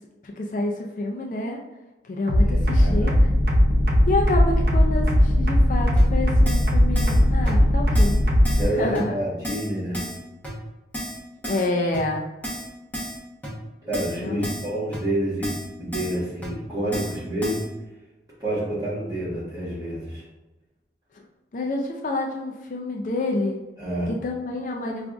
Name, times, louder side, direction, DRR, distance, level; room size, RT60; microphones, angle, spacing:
voice 1, 0.2-1.6 2.0-3.3 4.1-8.2 8.7-9.2 11.5-12.2 14.2-14.5 21.5-23.6 24.1-25.1, left 2 dB, 45° left, 0 dB, 0.3 m, -28 dB
sound 1, 2.3-8.6, left 1 dB, 60° right, 0.7 m, -18 dB
voice 2, 2.4-3.1 8.4-10.0 13.8-15.5 15.8-17.6 18.4-20.2 23.8-24.1, right 1 dB, 20° right, -9 dB, 1.4 m, -28 dB
Keyboard (musical), 6.0-6.1 6.5-6.7 7.0-7.2 7.5-7.6 8.0-8.2 8.5-8.7 9.0-9.1 9.4-9.7 9.9-10.2 10.4-10.5 10.9-11.2 11.4-11.7 11.9-12.0 12.4-12.7 12.9-13.2 13.4-13.5 13.9-14.2 14.4-14.7 14.9-15.0 15.4-15.7 15.9-16.2 16.4-16.5 16.9-17.2 17.4-17.6, equal, 10° left, 0.9 m, -32 dB
4.8 x 2.4 x 2.3 m, 1.1 s
head